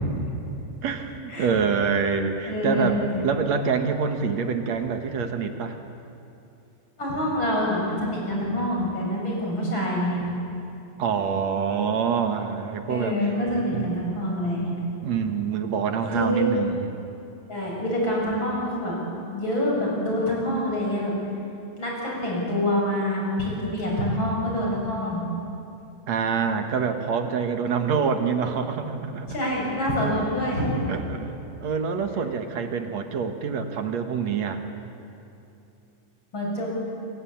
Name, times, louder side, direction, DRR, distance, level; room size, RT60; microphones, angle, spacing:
voice 1, 0.8-5.8 11.0-13.2 13.7-13.9 15.0-17.0 26.1-29.3 30.9-31.3 31.6-34.6, right 6 dB, 55° right, 6 dB, 2.4 m, -26 dB
voice 2, 2.4-2.9 7.0-10.2 12.9-14.8 16.1-16.5 17.5-19.0 19.3-21.1 21.8-25.2 29.3-30.7 36.3-36.7, left 1 dB, 30° left, -3 dB, 8.2 m, -26 dB
28.0 x 24.5 x 8.7 m, 2.8 s
omnidirectional pair, 4.1 m